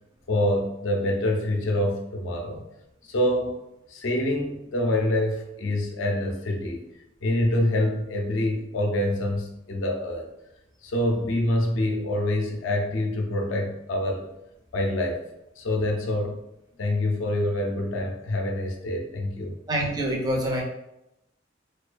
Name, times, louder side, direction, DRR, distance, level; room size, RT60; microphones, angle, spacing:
voice 1, 0.3-2.7 3.1-3.6 3.9-6.9 7.2-10.3 10.8-14.3 14.7-15.2 15.6-16.4 16.8-19.6, left 1 dB, 80° left, 2 dB, 0.4 m, -26 dB
voice 2, 19.7-20.6, right 1 dB, 20° right, -1 dB, 0.4 m, -26 dB
2.3 x 2.2 x 2.4 m, 0.87 s
head